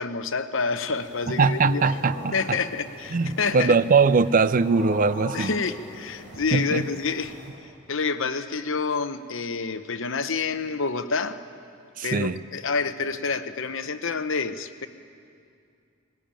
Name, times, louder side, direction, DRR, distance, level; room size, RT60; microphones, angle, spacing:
voice 1, 0.0-2.0 2.3-3.7 5.3-7.4 7.9-11.4 12.0-14.9, left 4 dB, 70° left, 9 dB, 0.9 m, -28 dB
sound 1, 0.9-7.5, left 1 dB, 65° right, 8.0 m, -42 dB
voice 2, 1.4-2.6 3.1-5.5 6.5-6.8 12.0-12.4, right 4 dB, 40° right, 15 dB, 0.4 m, -21 dB
19.5 x 17.5 x 8.9 m, 2.4 s
head